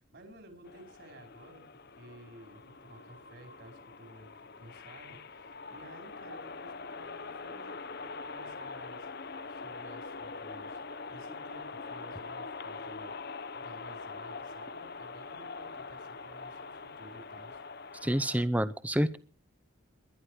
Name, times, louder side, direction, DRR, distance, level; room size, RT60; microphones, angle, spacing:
voice 1, 0.0-13.2 13.5-17.6, right 1 dB, 55° right, 4 dB, 4.7 m, -54 dB
sound 1, 0.6-18.4, left 4 dB, 50° left, 0.9 m, -43 dB
voice 2, 18.0-19.2, right 1 dB, 5° right, 14 dB, 0.7 m, -28 dB
21.5 x 11.0 x 4.8 m, 0.41 s
head